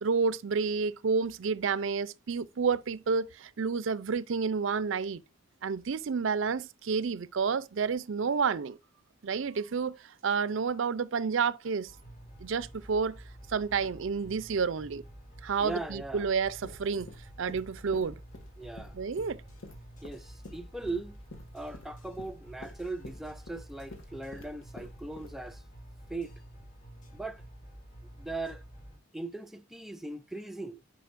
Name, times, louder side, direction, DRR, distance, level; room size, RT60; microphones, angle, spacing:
voice 1, 0.0-5.2 5.6-8.8 9.2-10.0 10.2-11.9 12.4-13.2 13.5-15.0 15.4-17.1 17.4-18.2 18.9-19.4, right 5 dB, 65° right, 0.4 m, -30 dB
sound 1, 11.9-29.0, right 1 dB, 35° left, 2.5 m, -50 dB
voice 2, 15.6-16.3 18.6-19.0 20.0-21.2 21.5-25.6 26.1-26.3 27.1-27.4 28.2-28.6 29.1-30.8, right 2 dB, ahead, 0.4 m, -39 dB
sound 2, 16.6-25.6, left 2 dB, 75° left, 1.9 m, -49 dB
10.0 x 5.1 x 2.5 m
head